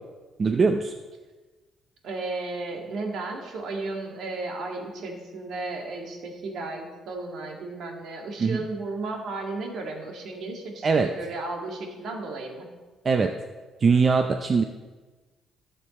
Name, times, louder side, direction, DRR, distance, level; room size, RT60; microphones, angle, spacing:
voice 1, 0.4-0.9 8.4-8.6 10.8-11.1 13.0-13.4 13.8-14.6, right 4 dB, 35° right, 6 dB, 0.5 m, -21 dB
voice 2, 2.0-12.7, right 3 dB, 65° right, 1 dB, 2.0 m, -34 dB
15.0 x 6.7 x 4.3 m, 1.3 s
cardioid pair, 135°, 0 cm